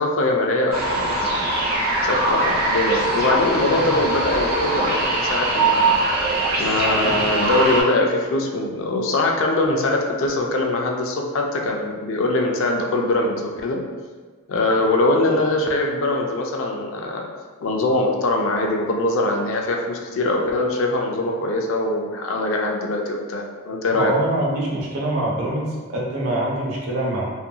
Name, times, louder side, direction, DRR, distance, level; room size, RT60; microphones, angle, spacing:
voice 1, 0.0-6.3 6.6-13.8 14.5-17.3 17.6-24.1, left 2 dB, 60° left, 1 dB, 0.3 m, -22 dB
sound 1, 0.7-7.8, right 2 dB, 40° right, 0.4 m, -22 dB
voice 2, 23.9-27.2, right 1 dB, 80° right, -3 dB, 0.6 m, -24 dB
2.7 x 2.5 x 2.2 m, 1.5 s
head